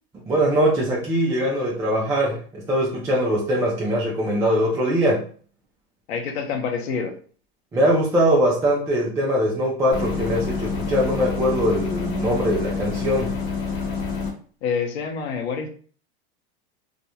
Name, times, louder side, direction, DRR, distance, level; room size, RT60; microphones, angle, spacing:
voice 1, 0.3-5.2 7.7-13.3, equal, 10° right, -4 dB, 0.3 m, -22 dB
voice 2, 6.1-7.2 14.6-15.7, left 6 dB, 80° left, 3 dB, 0.7 m, -27 dB
sound 1, 9.9-14.3, left 4 dB, 45° left, 0.9 m, -27 dB
2.5 x 2.1 x 2.8 m, 0.43 s
supercardioid pair, 135°, 32 cm